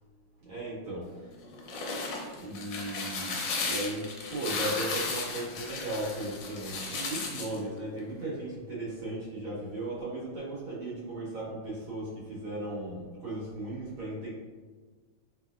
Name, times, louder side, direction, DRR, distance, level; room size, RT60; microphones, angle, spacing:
voice 1, 0.4-1.3 2.3-14.3, right 1 dB, 75° right, -7 dB, 1.7 m, -36 dB
sound 1, 1.4-7.6, left 4 dB, 70° left, 1.2 m, -35 dB
3.3 x 2.8 x 2.3 m, 1.4 s
omnidirectional pair, 2.2 m